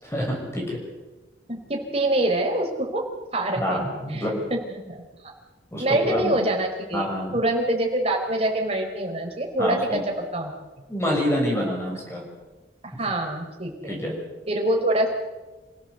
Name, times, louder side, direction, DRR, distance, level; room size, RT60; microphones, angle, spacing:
voice 1, 0.0-0.8 3.6-4.5 5.7-6.4 6.9-7.4 9.6-10.0 10.9-12.2 12.9-13.0 13.9-14.1, equal, 15° left, -1 dB, 6.8 m, -27 dB
voice 2, 1.5-3.0 3.3-5.3 5.8-7.0 7.3-10.0 10.3-10.5 11.9-12.0 12.8-14.0 14.5-15.1, right 1 dB, 35° right, 1 dB, 5.0 m, -25 dB
28.0 x 16.5 x 8.2 m, 1.2 s
head